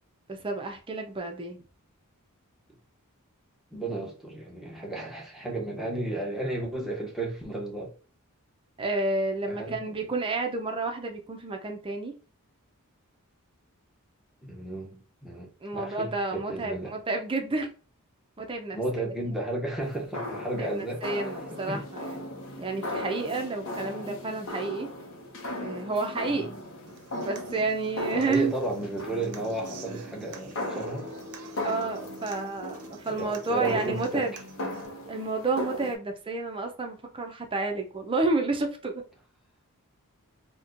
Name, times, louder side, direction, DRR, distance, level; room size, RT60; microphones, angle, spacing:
voice 1, 0.3-1.6 8.8-12.1 15.6-17.7 18.4-18.8 20.6-22.2 22.6-24.9 25.6-26.5 27.2-28.5 31.6-34.3 35.1-39.0, right 3 dB, 25° right, 0.5 m, -30 dB
voice 2, 3.7-7.9 9.5-10.0 14.4-16.9 18.7-21.0 21.7-21.8 26.3-26.4 28.1-31.1 33.1-34.3, right 2 dB, ahead, 0.8 m, -33 dB
sound 1, 19.8-36.0, left 1 dB, 60° left, 0.7 m, -37 dB
Human voice / Acoustic guitar, 26.9-34.9, right 2 dB, 85° right, 0.6 m, -46 dB
4.1 x 2.2 x 2.5 m
head